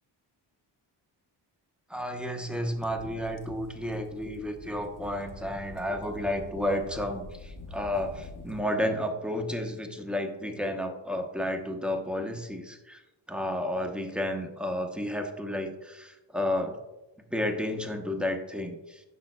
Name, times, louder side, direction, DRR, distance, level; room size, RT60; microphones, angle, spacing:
voice 1, 1.9-13.0 13.3-16.8 17.3-19.0, left 1 dB, ahead, 4 dB, 0.8 m, -32 dB
sound 1, 2.7-8.6, left 3 dB, 45° left, 0.8 m, -46 dB
10.5 x 6.0 x 2.2 m, 1.0 s
cardioid pair, 95°, 45 cm